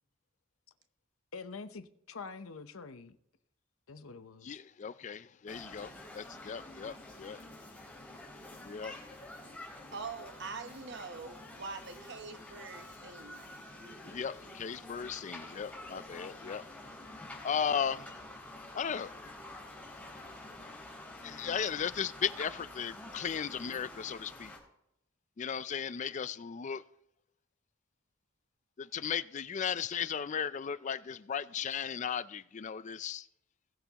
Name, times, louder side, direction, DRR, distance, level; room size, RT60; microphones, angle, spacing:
voice 1, 1.3-3.2 3.9-4.6, left 4 dB, 85° left, 0.8 m, -46 dB
voice 2, 4.4-7.4 8.6-8.9 14.1-16.7 17.4-18.1 18.7-19.1 21.2-24.5 25.4-26.8 28.8-33.3, left 7 dB, 35° left, 0.4 m, -36 dB
sound 1, 5.5-24.6, left 1 dB, 5° left, 3.5 m, -48 dB
voice 3, 9.9-13.4, right 4 dB, 60° right, 1.0 m, -44 dB
20.0 x 7.0 x 2.9 m
head